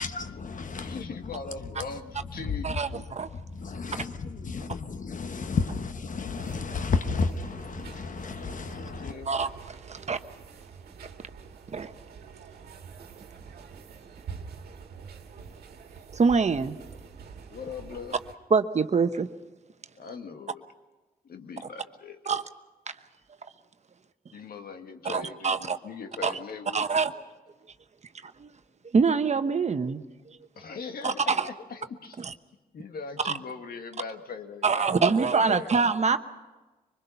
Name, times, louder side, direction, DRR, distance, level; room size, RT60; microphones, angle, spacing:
voice 1, 0.0-1.2 2.4-2.6 3.4-9.1, left 4 dB, 55° left, 1.1 m, -32 dB
voice 2, 0.8-3.0 9.0-9.3 17.5-18.2 20.0-20.6 21.2-22.2 24.3-26.9 30.5-32.2 32.7-35.8, left 5 dB, 70° left, 1.6 m, -40 dB
voice 3, 2.6-3.3 9.3-10.2 11.7-11.9 16.1-16.8 18.5-19.3 22.3-22.4 25.0-25.8 26.2-26.4 26.7-27.1 28.2-28.5 28.9-30.0 31.0-31.5 32.2-32.3 33.2-33.3 34.6-36.2, right 5 dB, 45° right, 1.1 m, -25 dB
sound 1, 6.3-18.3, right 6 dB, 90° right, 1.7 m, -46 dB
24.5 x 20.5 x 5.8 m
cardioid pair, 60°, 16 cm